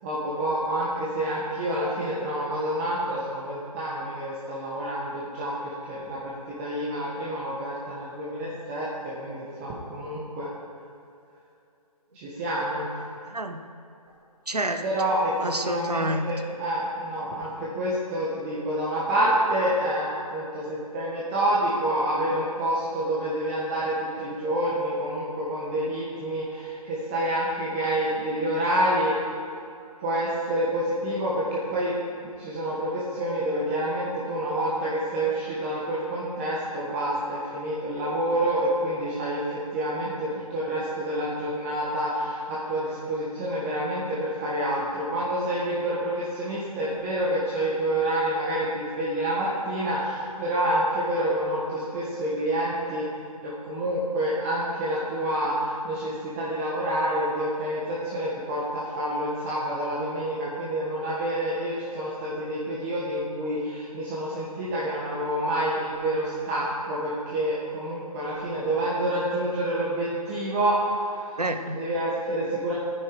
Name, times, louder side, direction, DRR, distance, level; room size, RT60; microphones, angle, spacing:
voice 1, 0.0-6.3 6.6-10.5 12.1-12.9 14.8-29.2 30.0-32.0 32.4-39.5 39.7-53.1 53.4-71.2 71.7-72.7, right 1 dB, 20° right, -7 dB, 1.9 m, -28 dB
voice 2, 13.3-13.6 14.5-14.8 15.4-16.2 71.4-71.8, right 1 dB, 85° right, 7 dB, 1.2 m, -28 dB
16.0 x 9.6 x 4.9 m, 2.7 s
figure-of-eight pair, 145°, 20 cm